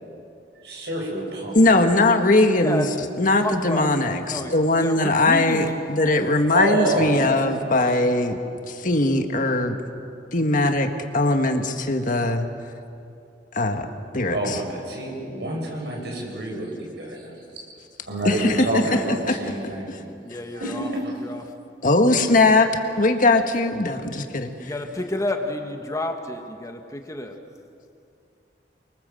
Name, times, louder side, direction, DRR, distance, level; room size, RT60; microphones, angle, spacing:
voice 1, 0.6-1.6 6.5-7.7 14.3-17.4 18.1-20.0 20.5-21.1, right 2 dB, 70° right, -1 dB, 7.8 m, -28 dB
voice 2, 1.5-2.9 3.2-8.4 8.7-9.8 10.3-12.5 13.5-13.9 14.1-14.6 18.3-19.0 19.3-19.4 21.8-22.7 23.0-24.7, left 2 dB, 50° left, 5 dB, 1.8 m, -20 dB
voice 3, 2.6-2.9 3.4-3.9 4.3-5.7 6.1-6.3 6.8-6.9 20.2-20.9 21.2-21.4 24.6-27.4, left 1 dB, 20° left, 4 dB, 1.8 m, -30 dB
28.5 x 24.0 x 7.9 m, 2.5 s
head